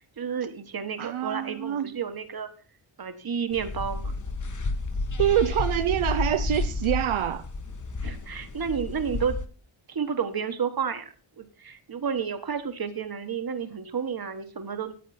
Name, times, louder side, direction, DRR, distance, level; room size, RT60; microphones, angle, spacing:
voice 1, 0.2-2.5 3.0-4.1 8.0-9.4 9.9-11.1 11.4-14.9, right 7 dB, 45° right, 1.4 m, -31 dB
voice 2, 1.0-1.9 5.2-7.5, right 11 dB, 75° right, 0.7 m, -25 dB
sound 1, 3.5-9.4, left 3 dB, 40° left, 1.1 m, -31 dB
14.0 x 9.1 x 4.3 m
wide cardioid pair, 165°, 49 cm